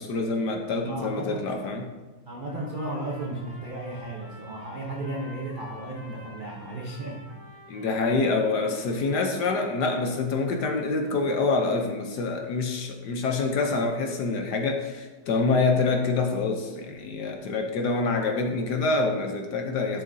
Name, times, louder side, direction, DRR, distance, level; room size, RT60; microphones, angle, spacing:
voice 1, 0.0-1.8 7.7-20.0, left 3 dB, 65° left, 3 dB, 1.2 m, -26 dB
voice 2, 0.8-1.6 2.3-7.3 11.0-11.1, right 1 dB, 60° right, -1 dB, 0.5 m, -34 dB
Trumpet, 2.5-9.2, left 1 dB, 45° left, 3.2 m, -50 dB
11.5 x 6.7 x 2.7 m, 1.2 s
omnidirectional pair, 2.2 m